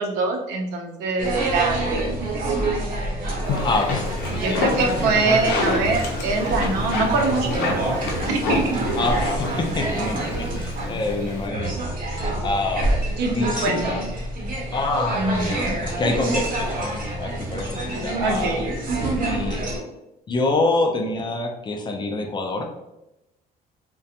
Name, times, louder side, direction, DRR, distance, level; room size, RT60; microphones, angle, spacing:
voice 1, 0.0-2.7 4.4-8.9 13.2-14.1 15.1-15.8 18.2-18.7, right 3 dB, 80° right, 2 dB, 0.6 m, -24 dB
sound 1, 1.2-19.8, right 1 dB, 55° right, 0.8 m, -27 dB
sound 2, 3.4-11.5, left 3 dB, 80° left, 0.6 m, -29 dB
voice 2, 3.6-4.6 9.0-11.9 12.4-12.9 13.3-14.0 14.7-16.9 17.2-18.6 19.1-19.6 20.3-22.7, left 2 dB, 25° left, 3 dB, 0.4 m, -26 dB
2.4 x 2.2 x 2.7 m, 0.91 s
cardioid pair, 110°, 17 cm